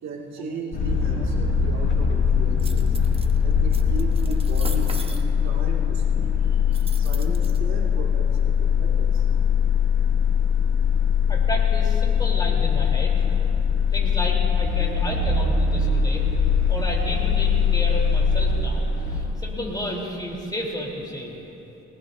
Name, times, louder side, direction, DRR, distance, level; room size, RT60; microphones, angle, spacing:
voice 1, 0.0-2.9 3.4-6.3 7.0-9.3, right 3 dB, 65° right, -2 dB, 2.4 m, -36 dB
sound 1, 0.7-19.2, left 6 dB, 40° left, 4.3 m, -21 dB
sound 2, 2.6-3.3 3.7-5.2 6.7-7.6, right 2 dB, 20° right, 1.2 m, -38 dB
voice 2, 11.3-13.2 13.9-16.2 16.7-21.3, equal, 15° left, -2 dB, 3.7 m, -32 dB
23.0 x 19.0 x 2.8 m, 3.0 s
cardioid pair, 90°, 30 cm